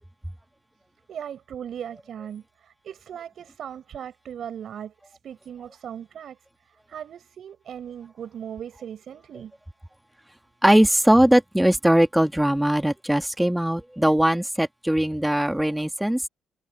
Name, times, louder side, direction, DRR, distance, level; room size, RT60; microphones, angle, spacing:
voice 1, 1.1-6.4 6.9-9.5, right 9 dB, 60° right, 7.3 m, -38 dB
voice 2, 10.6-16.2, right 1 dB, 5° right, 1.9 m, -20 dB
cardioid pair, 90°, 0 cm